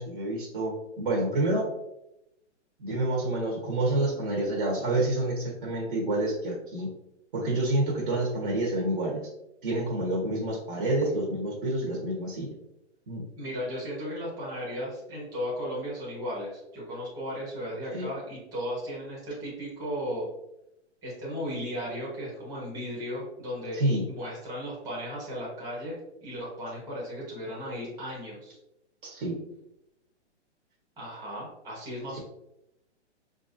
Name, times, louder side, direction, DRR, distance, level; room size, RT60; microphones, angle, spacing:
voice 1, 0.0-1.6 2.8-6.9 7.3-9.2 9.6-12.5 13.1-13.2 17.9-18.1 23.7-24.1 29.0-29.4, right 1 dB, 45° right, -2 dB, 1.3 m, -28 dB
voice 2, 13.4-20.3 21.0-28.6 31.0-32.2, equal, 10° right, -6 dB, 1.4 m, -35 dB
5.7 x 2.6 x 2.6 m, 0.85 s
hypercardioid pair, 150°, 35 cm